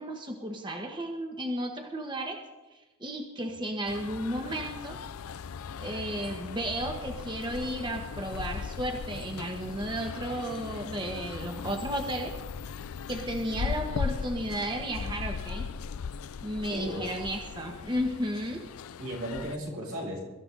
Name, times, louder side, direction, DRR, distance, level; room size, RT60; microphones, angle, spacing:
voice 1, 0.0-2.4 3.0-5.0 5.8-12.3 13.1-15.7 16.4-18.6, right 1 dB, 20° right, 3 dB, 1.4 m, -33 dB
sound 1, 3.9-19.6, left 6 dB, 90° left, 0.5 m, -38 dB
voice 2, 16.7-17.2 19.0-20.2, equal, 90° right, -2 dB, 7.5 m, -35 dB
23.5 x 14.0 x 4.0 m, 1.1 s
head